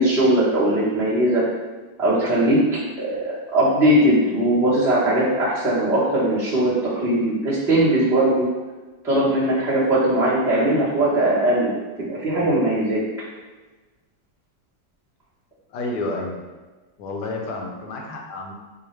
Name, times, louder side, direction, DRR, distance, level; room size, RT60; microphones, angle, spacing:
voice 1, 0.0-1.4 2.0-2.6 3.0-8.5 9.0-11.7 12.0-13.0, right 1 dB, ahead, -9 dB, 0.6 m, -19 dB
voice 2, 15.7-16.4 17.0-18.5, left 2 dB, 75° left, 1 dB, 1.2 m, -30 dB
4.6 x 2.1 x 3.2 m, 1.3 s
omnidirectional pair, 1.9 m